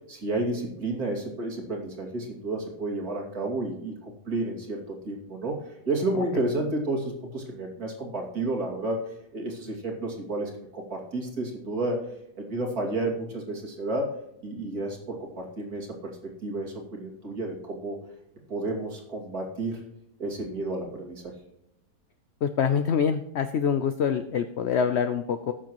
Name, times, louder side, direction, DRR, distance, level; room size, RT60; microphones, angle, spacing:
voice 1, 0.1-9.0 9.3-12.0 12.4-14.1 14.4-18.0 18.5-19.8 20.2-21.3, right 2 dB, 60° right, 0 dB, 3.1 m, -31 dB
voice 2, 22.4-25.5, left 7 dB, 60° left, 8 dB, 0.7 m, -25 dB
18.5 x 7.3 x 3.1 m, 0.84 s
omnidirectional pair, 1.8 m